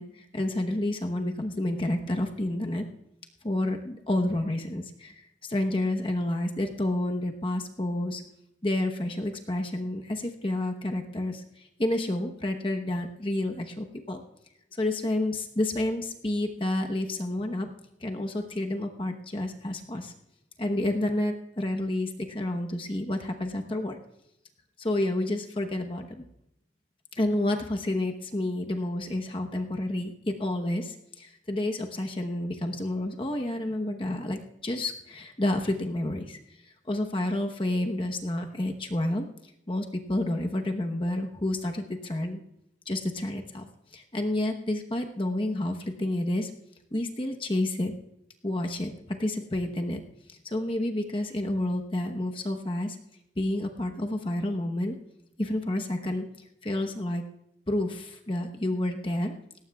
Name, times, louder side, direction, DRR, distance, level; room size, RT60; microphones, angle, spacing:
voice 1, 0.0-2.9 3.4-5.1 5.4-8.2 8.6-11.4 11.8-14.2 14.8-17.7 18.0-20.1 20.6-24.0 24.8-26.2 27.1-36.4 36.9-39.2 39.7-42.4 42.9-43.7 43.9-46.5 46.9-47.9 48.4-50.0 50.4-53.0 53.4-55.0 55.4-56.3 56.6-57.2 57.7-59.3, left 1 dB, 30° left, 4 dB, 1.0 m, -29 dB
18.5 x 17.5 x 2.3 m, 0.83 s
head